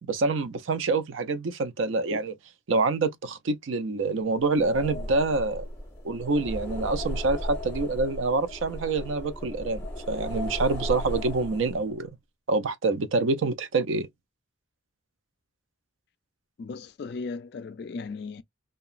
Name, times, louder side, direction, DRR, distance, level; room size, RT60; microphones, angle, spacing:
voice 1, 0.0-2.3 2.7-5.6 6.0-9.8 10.1-12.1 12.5-14.1, right 3 dB, 80° right, 0.5 m, -26 dB
sound 1, 4.4-12.0, equal, 15° left, 0.9 m, -36 dB
voice 2, 16.6-18.4, left 4 dB, 55° left, 0.3 m, -36 dB
2.8 x 2.2 x 2.4 m
head